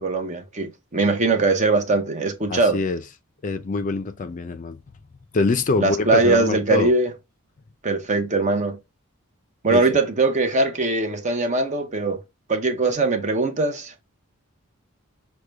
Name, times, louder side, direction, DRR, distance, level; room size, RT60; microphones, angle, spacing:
voice 1, 0.0-2.8 5.8-7.1 7.8-8.8 9.6-12.2 12.5-14.0, right 3 dB, 35° right, 0.7 m, -21 dB
voice 2, 2.5-3.0 3.4-4.8 5.3-6.9 9.7-9.8, left 4 dB, 35° left, 0.4 m, -24 dB
6.4 x 2.2 x 3.3 m
head